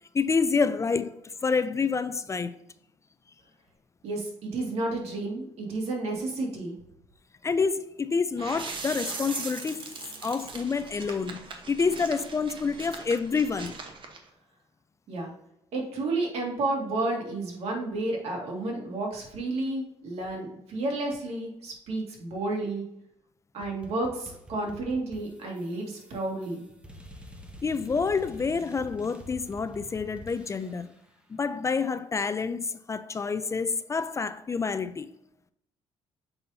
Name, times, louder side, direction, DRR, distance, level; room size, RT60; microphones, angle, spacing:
voice 1, 0.1-2.5 7.4-13.8 27.6-30.9 31.3-35.1, left 5 dB, 25° left, 0.4 m, -28 dB
voice 2, 4.0-6.7 15.1-15.3 15.7-22.8 23.5-26.6, right 2 dB, 75° right, 2.2 m, -31 dB
sound 1, 8.4-14.2, right 4 dB, 50° right, 1.2 m, -40 dB
sound 2, 23.6-31.0, equal, 10° right, 1.0 m, -47 dB
6.8 x 5.4 x 2.8 m
cardioid pair, 105°, 11 cm